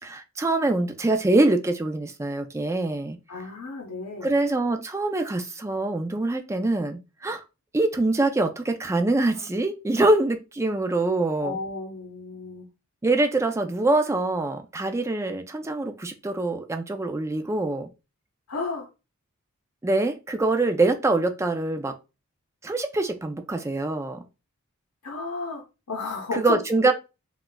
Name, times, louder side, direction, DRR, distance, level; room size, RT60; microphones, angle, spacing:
voice 1, 0.0-3.2 4.2-7.4 7.7-11.6 13.0-17.9 19.8-22.0 22.6-24.2 26.3-26.9, right 2 dB, 15° right, 0.3 m, -24 dB
voice 2, 3.3-4.3 11.4-12.7 18.5-18.9 25.0-26.6, left 3 dB, 80° left, 0.7 m, -33 dB
3.9 x 2.3 x 2.2 m
head